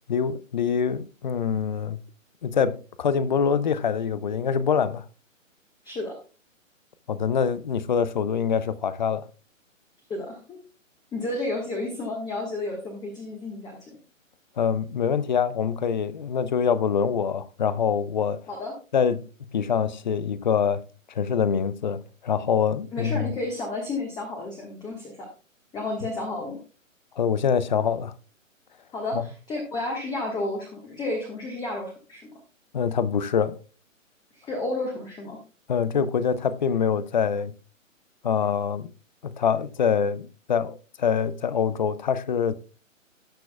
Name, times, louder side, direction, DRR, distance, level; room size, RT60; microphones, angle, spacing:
voice 1, 0.1-2.0 2.4-5.1 7.1-9.3 14.6-18.4 18.9-19.2 19.5-20.8 21.1-23.3 27.2-28.1 29.1-29.3 32.7-33.6 35.7-37.5 38.2-38.9 39.2-42.5, left 7 dB, 35° left, 0.6 m, -25 dB
voice 2, 10.1-10.6 11.1-14.0 18.5-18.7 22.9-25.3 25.7-26.6 28.9-32.3 34.3-35.4, left 2 dB, 10° left, 1.3 m, -31 dB
18.0 x 6.0 x 2.2 m
figure-of-eight pair, 135°, 40 cm